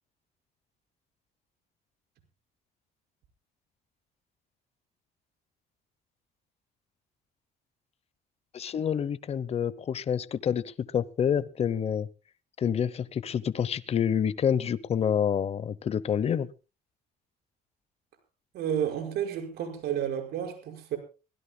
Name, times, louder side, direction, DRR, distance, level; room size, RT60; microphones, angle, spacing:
voice 1, 8.5-12.1 12.6-16.5, left 8 dB, 35° left, 0.8 m, -28 dB
voice 2, 18.5-21.0, right 9 dB, 75° right, 5.5 m, -31 dB
24.0 x 16.5 x 2.2 m
cardioid pair, 110°, 17 cm